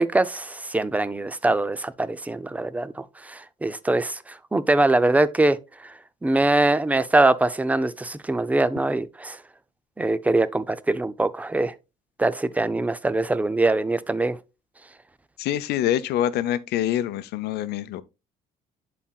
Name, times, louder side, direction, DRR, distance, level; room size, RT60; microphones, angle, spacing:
voice 1, 0.0-5.9 6.2-9.4 10.0-11.7 12.2-14.4, right 2 dB, 10° right, 0.5 m, -23 dB
voice 2, 15.4-18.0, left 12 dB, 75° left, 0.6 m, -25 dB
11.0 x 4.3 x 2.3 m
cardioid pair, 110°, 17 cm